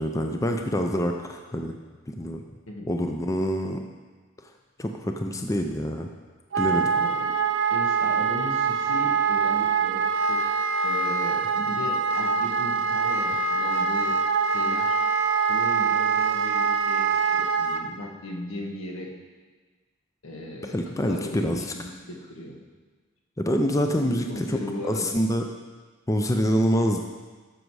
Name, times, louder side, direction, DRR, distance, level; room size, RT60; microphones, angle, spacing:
voice 1, 0.0-1.7 2.1-2.4 2.9-3.8 4.4-4.5 4.8-6.1 6.6-6.8 20.7-21.7 23.4-24.6 24.8-25.4 26.1-27.0, equal, 15° left, 4 dB, 0.5 m, -26 dB
Wind instrument woodwind instrument, 6.5-17.8, right 5 dB, 60° right, 0.7 m, -24 dB
voice 2, 6.7-7.3 7.7-14.2 14.5-15.0 15.5-19.1 20.2-22.6 23.8-25.2, left 1 dB, 80° left, 0 dB, 1.6 m, -37 dB
13.0 x 6.4 x 4.7 m, 1.4 s
head